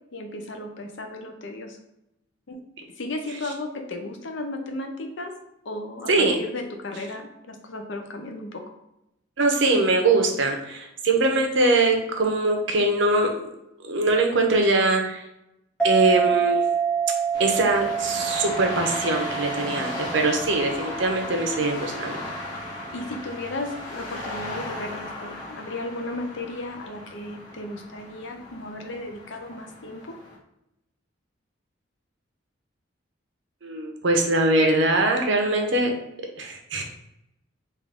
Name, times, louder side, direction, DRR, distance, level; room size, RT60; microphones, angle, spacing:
voice 1, 0.1-1.8 2.5-2.6 3.0-5.3 5.7-8.6 22.6-30.2, left 2 dB, 65° left, 4 dB, 0.6 m, -35 dB
voice 2, 9.4-13.3 13.8-15.2 15.8-16.6 17.4-22.2 33.6-35.9 36.4-36.8, right 2 dB, 65° right, 2 dB, 0.7 m, -22 dB
sound 1, 15.8-22.8, right 7 dB, 5° left, 0.3 m, -28 dB
sound 2, 17.3-30.4, left 2 dB, 20° left, 0.9 m, -36 dB
3.6 x 2.5 x 3.5 m, 0.86 s
head